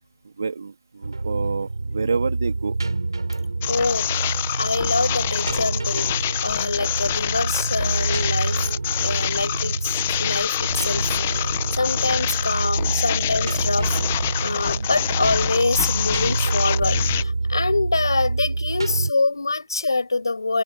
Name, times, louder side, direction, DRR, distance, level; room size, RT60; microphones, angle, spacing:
voice 1, 0.2-2.8, right 4 dB, 35° right, 3.3 m, -28 dB
sound 1, 1.0-19.1, right 3 dB, 55° right, 3.7 m, -27 dB
sound 2, 3.6-17.2, left 12 dB, 10° left, 0.9 m, -26 dB
voice 2, 3.7-8.7 9.0-11.4 11.7-20.6, left 3 dB, 50° left, 6.8 m, -25 dB
figure-of-eight pair, 175°, 3 cm